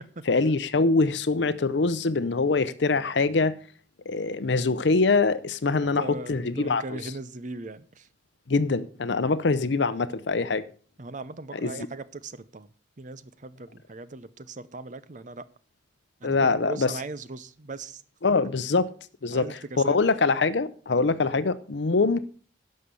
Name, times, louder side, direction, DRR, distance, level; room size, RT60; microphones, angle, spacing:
voice 1, 0.3-3.6 4.1-7.1 8.5-10.6 11.6-11.9 16.2-16.9 18.2-18.9 19.2-22.3, left 3 dB, 75° left, 0.7 m, -24 dB
voice 2, 5.7-8.1 11.0-15.5 16.2-18.0 19.3-20.0, right 3 dB, 45° right, 0.7 m, -39 dB
11.5 x 6.5 x 6.9 m
head